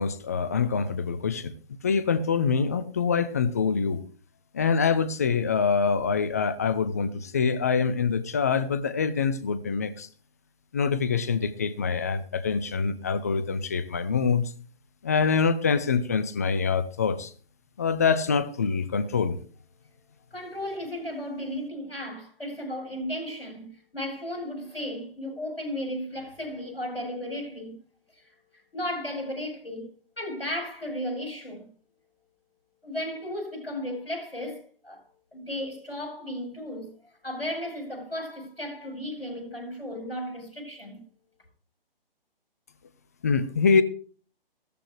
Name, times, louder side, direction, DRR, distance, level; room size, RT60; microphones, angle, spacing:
voice 1, 0.0-1.5 1.8-4.0 4.5-10.1 10.7-14.5 15.0-17.3 17.8-19.4 43.2-43.8, left 5 dB, 15° left, 0.5 m, -25 dB
voice 2, 20.3-27.7 28.2-29.9 30.2-31.7 32.8-35.0 35.3-36.9 37.2-41.0, left 1 dB, 85° left, 6.4 m, -35 dB
15.0 x 13.5 x 3.2 m
figure-of-eight pair, 135°, 29 cm